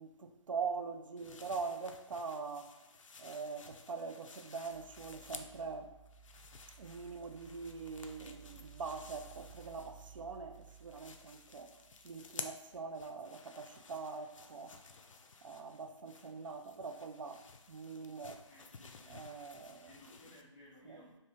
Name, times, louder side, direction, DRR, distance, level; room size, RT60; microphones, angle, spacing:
voice 1, 0.0-2.7 3.2-5.9 6.8-11.7 12.0-14.7 15.4-17.4 17.7-18.4 19.1-20.0 20.2-20.3 20.8-21.1, right 4 dB, 80° right, 6 dB, 0.4 m, -43 dB
sound 1, 1.2-5.7 6.1-10.2 10.5-20.4, left 4 dB, 85° left, 0.4 m, -54 dB
sound 2, 4.7-12.9 13.4-13.5, right 7 dB, 35° right, 0.8 m, -58 dB
voice 2, 18.5-19.2 19.8-21.2, left 1 dB, 10° left, -6 dB, 0.3 m, -59 dB
2.7 x 2.7 x 3.5 m, 1.0 s
hypercardioid pair, 155°, 16 cm